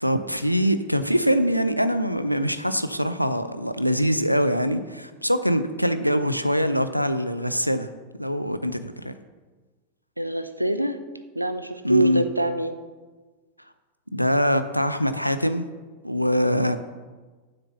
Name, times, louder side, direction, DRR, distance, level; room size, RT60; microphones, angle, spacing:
voice 1, 0.0-7.9 8.2-9.2 11.8-12.2 14.1-15.7 16.0-16.8, equal, 90° left, 10 dB, 0.5 m, -23 dB
voice 2, 10.2-11.0 11.3-12.7, right 1 dB, 85° right, 9 dB, 0.6 m, -25 dB
7.0 x 6.7 x 6.9 m, 1.3 s
figure-of-eight pair, 90°, 0 cm